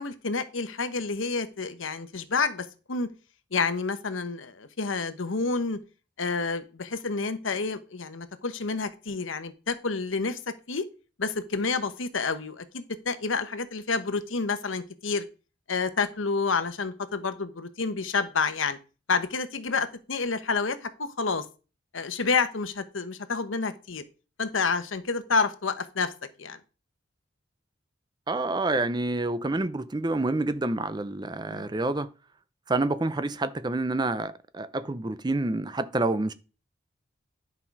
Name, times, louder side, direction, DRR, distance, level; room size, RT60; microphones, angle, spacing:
voice 1, 0.0-3.1 3.5-5.8 6.2-10.8 11.2-15.2 15.7-18.8 19.1-21.4 21.9-24.0 24.4-26.1 26.4-26.6 31.5-31.7, left 4 dB, 85° left, 1.0 m, -29 dB
voice 2, 28.3-32.1 32.7-36.3, right 2 dB, 20° right, 0.5 m, -28 dB
10.5 x 5.5 x 4.7 m
head